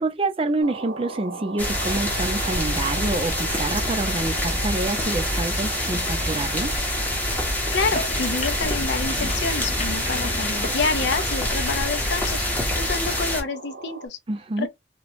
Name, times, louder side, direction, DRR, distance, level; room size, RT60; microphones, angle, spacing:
voice 1, 0.0-6.7 14.3-14.7, right 2 dB, 30° right, 0.5 m, -27 dB
sound 1, 0.6-14.1, right 4 dB, 80° right, 0.9 m, -39 dB
sound 2, 1.6-13.4, left 1 dB, 10° left, 0.7 m, -26 dB
voice 2, 7.7-12.4 12.7-14.2 14.6-14.7, left 4 dB, 70° left, 0.5 m, -28 dB
sound 3, 7.8-13.2, left 2 dB, 40° left, 0.8 m, -36 dB
3.0 x 2.1 x 2.6 m
head